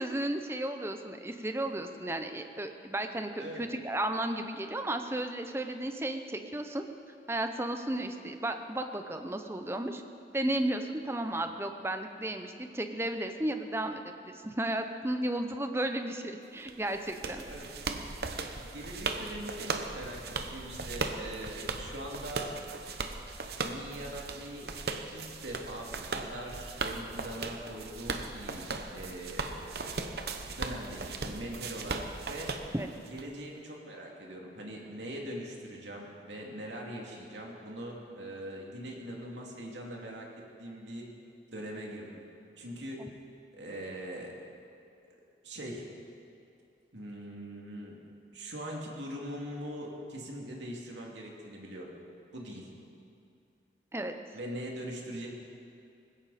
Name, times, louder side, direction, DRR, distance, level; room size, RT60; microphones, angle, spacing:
voice 1, 0.0-6.8 7.3-10.0 10.3-17.4 32.7-32.9 43.0-43.1 53.9-54.2, right 1 dB, 15° right, 6 dB, 0.7 m, -34 dB
sound 1, 16.7-33.2, right 3 dB, 60° right, 1.0 m, -38 dB
voice 2, 18.6-20.2 20.5-22.5 23.6-24.7 25.1-29.8 30.5-32.6 33.1-40.3 40.6-41.1 41.5-42.2 42.6-43.1 43.5-44.4 45.4-45.8 46.9-48.0 48.3-51.9 52.3-52.7 54.3-55.3, right 1 dB, 80° right, -1 dB, 2.7 m, -42 dB
19.5 x 16.5 x 4.3 m, 2.6 s
head